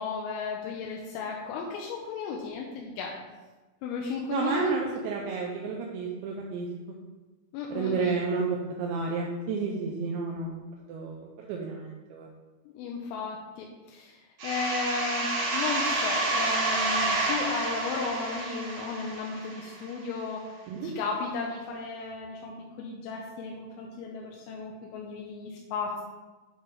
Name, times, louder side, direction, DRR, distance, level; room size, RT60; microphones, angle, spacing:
voice 1, 0.0-3.2 3.8-5.0 7.5-8.1 12.8-20.5 20.8-26.0, left 4 dB, 85° left, -1 dB, 3.3 m, -34 dB
voice 2, 4.3-6.7 7.7-10.6 10.9-12.3 20.7-20.9, right 5 dB, 85° right, -1 dB, 2.6 m, -31 dB
sound 1, 14.4-19.9, right 2 dB, 65° right, 2.1 m, -29 dB
9.8 x 3.3 x 5.3 m, 1.2 s
omnidirectional pair, 5.9 m